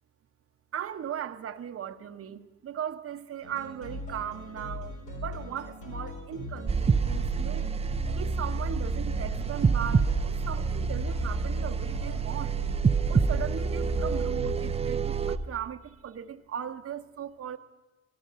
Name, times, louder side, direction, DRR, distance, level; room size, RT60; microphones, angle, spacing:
voice 1, 0.7-7.7 8.1-12.6 13.1-17.6, right 9 dB, 50° right, 0.9 m, -38 dB
sound 1, 3.4-14.8, left 1 dB, 90° left, 4.3 m, -39 dB
sound 2, 6.7-15.4, right 5 dB, 20° right, 0.5 m, -27 dB
13.0 x 13.0 x 6.8 m
cardioid pair, 90°, 30 cm